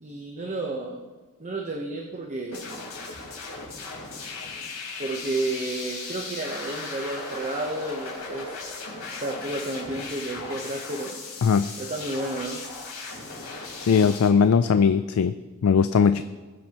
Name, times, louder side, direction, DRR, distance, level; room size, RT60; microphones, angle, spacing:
voice 1, 0.0-1.0 1.4-2.8 5.0-8.6 9.2-11.2 11.8-12.6, right 2 dB, 30° right, 1 dB, 0.9 m, -31 dB
sound 1, 2.5-14.3, left 3 dB, 85° left, 4.0 m, -37 dB
voice 2, 13.9-15.3 15.6-16.2, left 6 dB, 70° left, 11 dB, 0.4 m, -19 dB
20.0 x 7.5 x 2.9 m, 1.3 s
head